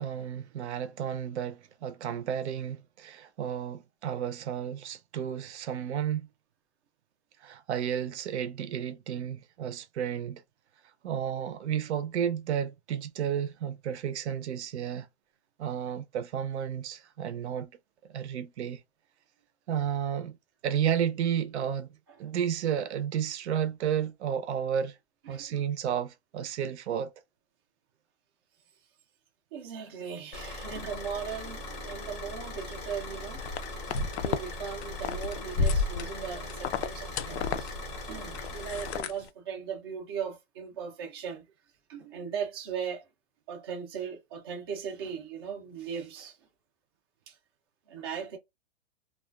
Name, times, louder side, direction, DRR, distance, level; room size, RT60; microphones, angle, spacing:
voice 1, 0.0-6.3 7.4-10.4 11.0-15.1 15.6-17.7 18.1-18.8 19.7-20.4 20.6-21.9 22.2-25.0 25.3-27.1, right 9 dB, 80° right, 0.6 m, -32 dB
voice 2, 25.3-25.6 29.5-33.5 34.2-37.7 38.1-41.5 41.9-43.1 43.5-46.4 47.3-47.4 47.9-48.4, right 7 dB, 25° right, 0.4 m, -38 dB
Car / Idling, 30.3-39.0, left 1 dB, 25° left, 0.6 m, -40 dB
sound 1, 33.4-34.5 34.7-39.3, left 5 dB, 70° left, 0.5 m, -31 dB
2.3 x 2.3 x 2.3 m
supercardioid pair, 175°, 34 cm